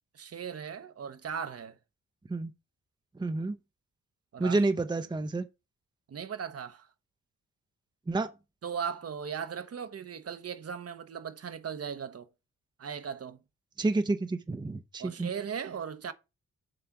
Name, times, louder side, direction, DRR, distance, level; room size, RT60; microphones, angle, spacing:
voice 1, 0.1-1.8 4.3-4.6 6.1-6.9 8.6-12.3 12.8-13.4 15.0-16.1, right 7 dB, 50° right, 0.9 m, -38 dB
voice 2, 3.2-3.6 4.4-5.5 8.1-8.3 13.8-15.3, right 2 dB, 15° right, 0.6 m, -29 dB
7.7 x 3.3 x 5.9 m
cardioid pair, 70°, 31 cm